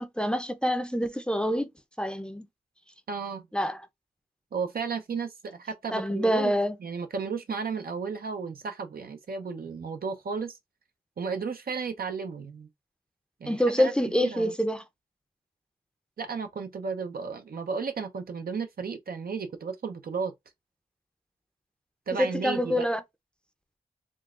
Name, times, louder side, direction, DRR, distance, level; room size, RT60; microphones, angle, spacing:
voice 1, 0.0-1.7 2.0-2.5 3.5-3.8 5.9-6.8 13.5-14.8 22.2-23.0, equal, 5° left, 0.7 m, -26 dB
voice 2, 3.1-3.4 4.5-10.6 11.2-12.7 13.4-13.9 14.2-14.5 16.2-20.3 22.1-22.8, right 5 dB, 60° right, 0.7 m, -34 dB
3.8 x 2.3 x 2.4 m
cardioid pair, 45°, 18 cm